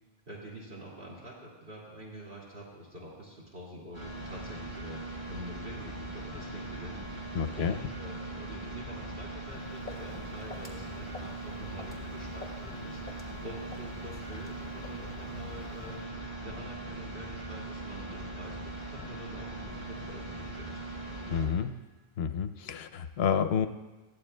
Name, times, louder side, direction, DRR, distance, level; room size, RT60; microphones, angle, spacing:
voice 1, 0.3-20.8, right 1 dB, 65° right, -5 dB, 2.6 m, -46 dB
sound 1, 3.9-21.5, right 1 dB, 15° right, 3.7 m, -40 dB
voice 2, 7.4-7.7 21.3-21.8 22.2-23.7, left 7 dB, 80° left, 9 dB, 0.8 m, -29 dB
Walk footsteps, 9.5-16.1, left 3 dB, 10° left, 1.8 m, -50 dB
20.5 x 15.5 x 2.2 m, 1.2 s
omnidirectional pair, 1.0 m